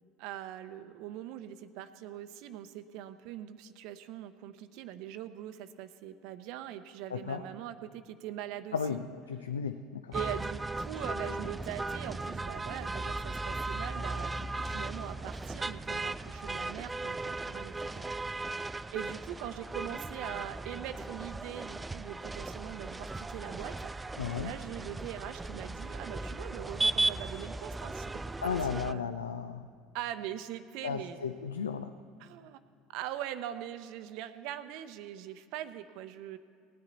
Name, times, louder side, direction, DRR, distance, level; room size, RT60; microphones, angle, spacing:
voice 1, 0.2-9.0 10.1-24.0 24.3-28.2 28.7-29.1 29.9-31.2 32.2-32.6 32.9-36.4, right 12 dB, 60° right, 10 dB, 0.6 m, -42 dB
voice 2, 7.1-7.4 8.7-10.1 24.2-24.5 28.4-29.7 30.8-31.9, left 6 dB, 85° left, 9 dB, 0.4 m, -34 dB
sound 1, 10.1-28.9, right 2 dB, 15° right, 0.4 m, -36 dB
18.5 x 10.0 x 4.1 m, 2.3 s
figure-of-eight pair, 70°, 0 cm